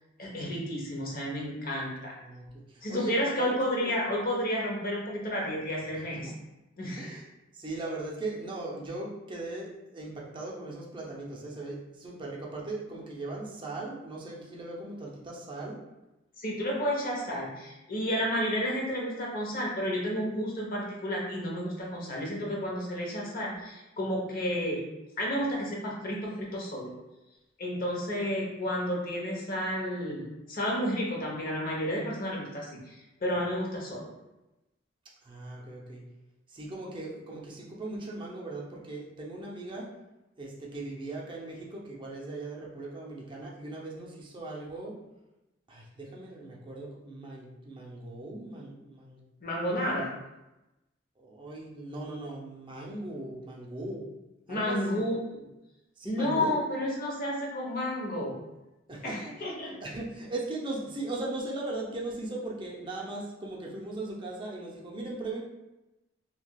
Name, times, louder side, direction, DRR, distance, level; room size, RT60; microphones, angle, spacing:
voice 1, 0.2-2.1 2.8-6.3 6.8-7.2 16.4-24.8 25.2-26.9 27.6-34.1 49.4-50.1 54.5-55.5 56.0-58.4 59.0-59.7, equal, 50° left, -2 dB, 0.8 m, -31 dB
voice 2, 2.2-4.0 5.9-6.3 7.0-7.2 7.5-15.8 35.2-36.0 36.5-39.9 40.4-45.0 45.7-49.2 49.7-49.8 51.2-54.1 54.5-55.1 56.0-56.6 58.9-59.2 59.6-65.4, right 2 dB, 25° right, -3 dB, 0.5 m, -39 dB
3.2 x 2.8 x 2.2 m, 0.98 s
head